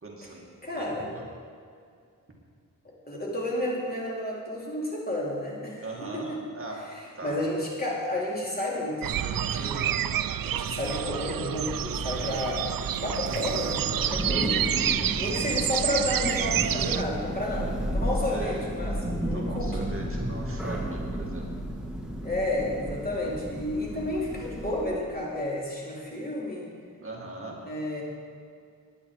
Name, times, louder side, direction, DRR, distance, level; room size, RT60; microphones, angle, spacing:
voice 1, 0.0-0.5 0.8-1.2 5.8-6.8 7.2-7.4 14.2-14.9 18.3-18.7 19.0-21.5 27.0-27.6, right 2 dB, 40° right, -2 dB, 2.4 m, -40 dB
voice 2, 0.6-1.1 2.8-6.4 7.2-9.9 10.4-12.6 13.0-19.8 22.2-26.7 27.6-28.0, left 1 dB, 30° left, -4 dB, 3.7 m, -31 dB
sound 1, 9.0-17.0, right 10 dB, 90° right, 0.5 m, -29 dB
Thunder, 11.3-25.0, equal, ahead, 1.8 m, -33 dB
18.5 x 10.5 x 4.9 m, 2.3 s
wide cardioid pair, 105°, 33 cm